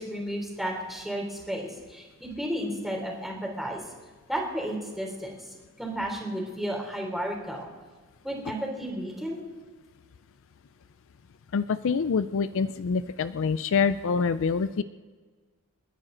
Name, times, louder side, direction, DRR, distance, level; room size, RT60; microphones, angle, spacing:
voice 1, 0.0-3.8 4.3-5.4 5.8-7.7 8.2-9.4, equal, ahead, -1 dB, 3.3 m, -33 dB
voice 2, 11.5-14.8, left 5 dB, 60° left, 13 dB, 0.4 m, -26 dB
30.0 x 10.0 x 3.9 m, 1.4 s
head